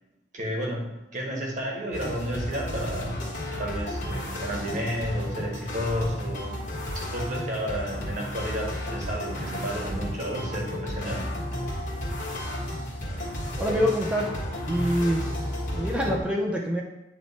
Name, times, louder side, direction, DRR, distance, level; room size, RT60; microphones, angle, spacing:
voice 1, 0.3-3.3 3.6-6.5 6.9-11.3 13.6-13.8, equal, 40° right, -1 dB, 1.3 m, -32 dB
sound 1, 1.9-16.2, left 1 dB, 45° left, 1.5 m, -33 dB
voice 2, 13.6-14.3 14.7-15.2 15.7-16.8, equal, 5° right, -2 dB, 0.6 m, -25 dB
9.3 x 3.1 x 4.1 m, 0.91 s
head